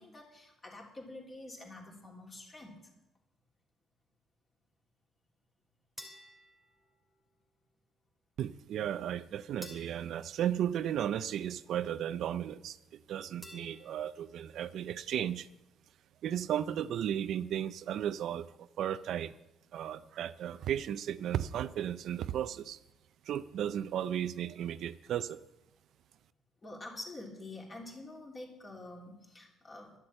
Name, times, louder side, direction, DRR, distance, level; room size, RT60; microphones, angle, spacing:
voice 1, 0.0-2.8 26.6-29.9, left 2 dB, 25° left, 0 dB, 3.4 m, -47 dB
sound 1, 6.0-7.5 9.6-11.5 13.4-14.5, left 1 dB, 5° left, 3.0 m, -53 dB
voice 2, 8.4-15.5 16.2-19.3 19.7-22.8 23.3-25.4, right 10 dB, 65° right, 14 dB, 0.4 m, -35 dB
12.0 x 8.1 x 8.8 m, 0.94 s
cardioid pair, 115°, 0 cm